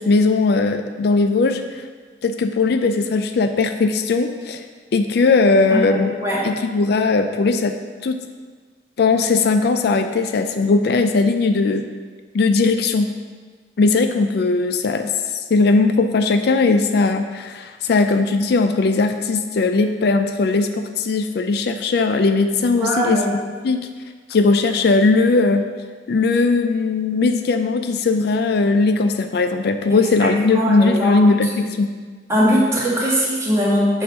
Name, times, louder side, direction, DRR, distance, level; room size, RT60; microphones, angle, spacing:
voice 1, 0.0-1.8 2.2-4.6 4.9-6.1 6.4-7.8 8.0-8.2 9.0-11.8 12.3-13.1 13.8-15.1 15.5-23.9 24.3-25.7 26.1-31.9, left 3 dB, 65° left, 7 dB, 0.4 m, -18 dB
voice 2, 5.7-6.4 22.8-23.3 29.9-31.2 32.3-34.0, equal, 15° right, -6 dB, 1.8 m, -20 dB
7.0 x 3.9 x 6.1 m, 1.5 s
head